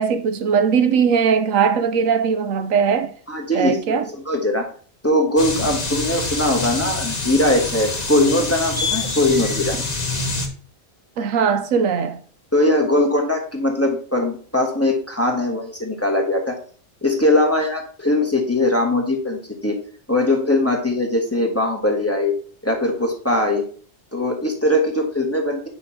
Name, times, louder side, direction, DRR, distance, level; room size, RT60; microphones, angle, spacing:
voice 1, 0.0-3.1 3.5-4.0 11.2-12.2, right 6 dB, 75° right, 1.1 m, -19 dB
voice 2, 3.3-4.6 5.0-9.8 12.5-16.6 17.0-19.8 20.1-22.3 22.6-23.6 24.1-25.7, left 1 dB, 10° left, 1.3 m, -20 dB
sound 1, 5.4-10.5, left 3 dB, 30° left, 1.2 m, -26 dB
8.9 x 5.7 x 2.8 m
omnidirectional pair, 1.4 m